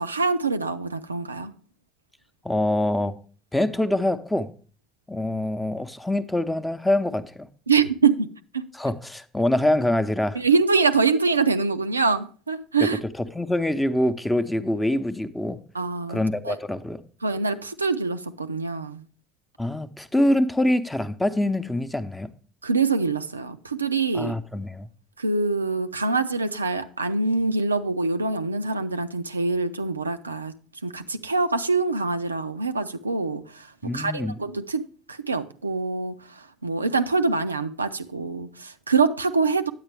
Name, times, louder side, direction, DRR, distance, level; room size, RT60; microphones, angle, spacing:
voice 1, 0.0-1.5 7.7-8.7 10.4-13.0 15.7-16.2 16.4-16.6 17.2-19.1 22.6-24.3 25.2-30.5 30.8-39.7, right 4 dB, 90° right, 0.3 m, -25 dB
voice 2, 2.4-3.2 3.5-4.5 5.1-7.5 8.7-10.4 13.3-15.6 16.1-17.0 19.6-22.3 24.1-24.9 33.8-34.4, left 1 dB, 10° left, 0.6 m, -24 dB
8.8 x 8.1 x 3.2 m
figure-of-eight pair, 60°, 0 cm